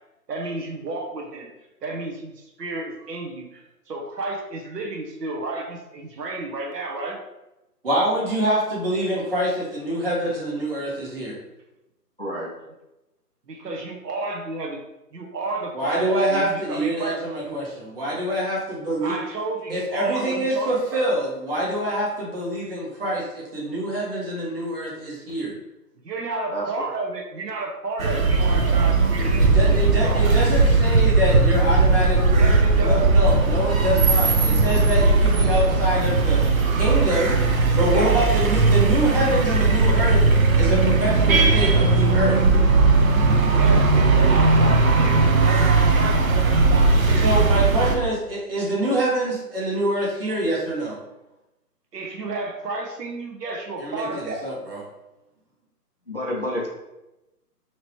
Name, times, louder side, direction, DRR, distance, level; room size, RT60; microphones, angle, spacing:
voice 1, 0.3-1.5 1.8-7.2 12.6-12.7 13.5-14.8 15.1-17.2 17.5-17.6 19.0-21.0 26.0-30.2 32.3-33.1 37.9-38.3 43.5-47.7 51.9-54.5, right 3 dB, 85° right, 1 dB, 1.0 m, -32 dB
voice 2, 7.8-11.4 15.7-19.1 19.7-25.5 29.4-32.5 32.8-36.4 36.7-37.4 37.8-40.2 40.6-42.4 47.2-51.0 53.8-54.8, right 1 dB, 35° right, -5 dB, 1.1 m, -25 dB
voice 3, 12.2-12.5 26.5-26.7 56.1-56.7, equal, 40° left, -4 dB, 0.4 m, -28 dB
sound 1, 28.0-48.0, right 3 dB, 60° right, 0.6 m, -18 dB
3.0 x 2.8 x 3.0 m, 0.95 s
hypercardioid pair, 170°, 48 cm